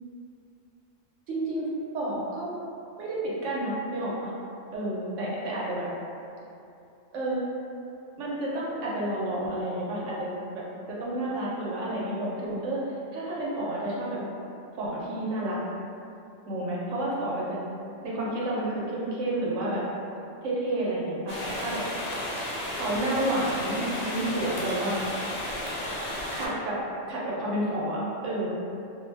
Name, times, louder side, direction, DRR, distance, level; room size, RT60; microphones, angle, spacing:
voice 1, 1.3-1.7 1.9-2.5 3.0-4.3 4.7-5.9 7.1-7.4 8.2-10.6 10.9-12.8 13.1-14.2 14.8-15.6 16.5-17.6 18.0-19.8 20.4-21.8 22.7-25.0 26.3-26.8 27.1-28.5, right 1 dB, 75° right, -6 dB, 1.0 m, -30 dB
sound 1, 21.3-26.5, left 1 dB, 80° left, 0.3 m, -33 dB
2.5 x 2.1 x 3.2 m, 2.7 s
omnidirectional pair, 1.3 m